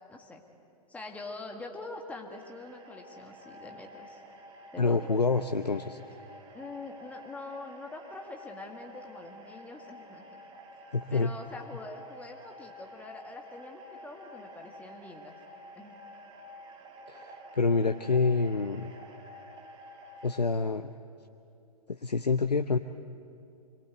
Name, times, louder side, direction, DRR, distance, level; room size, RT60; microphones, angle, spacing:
voice 1, 0.1-0.4 0.9-4.2 4.7-5.1 6.5-10.3 11.1-15.3 15.8-16.0, left 2 dB, 5° left, 2 dB, 1.9 m, -44 dB
sound 1, 2.3-20.4, equal, 25° right, 2.8 m, -50 dB
voice 2, 4.8-6.0 10.9-11.3 17.1-18.9 20.2-20.9 21.9-22.8, left 4 dB, 90° left, 9 dB, 0.8 m, -27 dB
25.5 x 22.5 x 8.2 m, 2.6 s
figure-of-eight pair, 115°, 20 cm